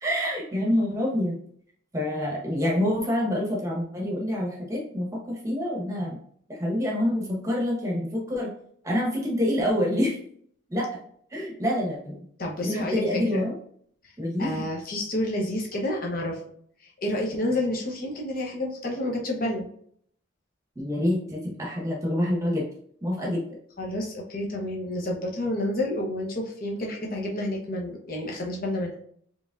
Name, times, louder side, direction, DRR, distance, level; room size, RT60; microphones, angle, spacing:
voice 1, 0.0-1.4 1.9-6.2 6.5-8.5 8.8-10.2 10.7-10.9 11.3-12.2 12.6-13.5 14.2-14.7 20.7-22.7 23.0-23.4, left 1 dB, 15° right, -2 dB, 1.1 m, -27 dB
voice 2, 12.4-13.0 13.3-13.4 14.0-14.1 14.4-16.4 16.8-19.7 23.8-28.9, left 1 dB, 45° left, -1 dB, 0.9 m, -29 dB
4.8 x 3.2 x 2.5 m, 0.63 s
head